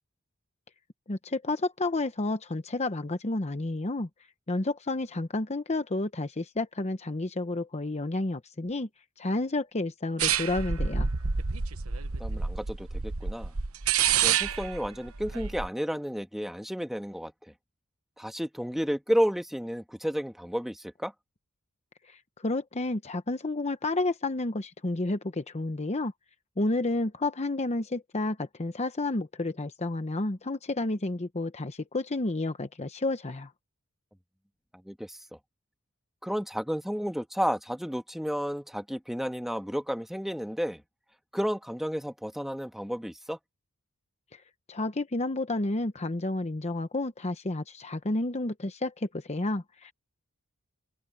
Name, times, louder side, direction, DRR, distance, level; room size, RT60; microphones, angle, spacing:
voice 1, 1.1-4.1 4.5-8.9 9.2-11.1 22.0-26.1 26.6-33.5 44.3-44.4 44.7-49.9, left 2 dB, 30° left, 0.9 m, -30 dB
sound 1, 10.2-15.7, right 7 dB, 80° right, 1.1 m, -28 dB
voice 2, 12.2-13.5 14.2-17.3 18.2-21.1 34.8-35.2 36.2-40.8 41.3-43.4, equal, ahead, 1.6 m, -31 dB
open air
head